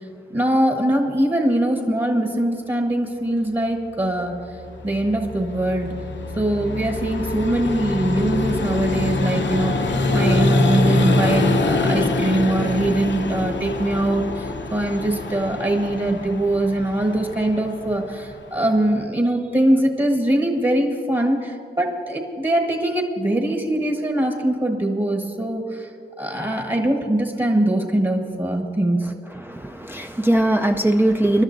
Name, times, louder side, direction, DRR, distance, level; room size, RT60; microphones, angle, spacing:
voice 1, 0.3-4.3 4.8-5.9 6.3-25.9 26.2-29.1, right 1 dB, 25° right, 1 dB, 1.3 m, -22 dB
Vehicle, 4.3-19.0, left 2 dB, 70° left, 0.9 m, -24 dB
voice 2, 29.3-31.4, right 1 dB, 10° right, 2 dB, 0.5 m, -20 dB
27.5 x 12.0 x 2.6 m, 2.4 s
wide cardioid pair, 100°, 19 cm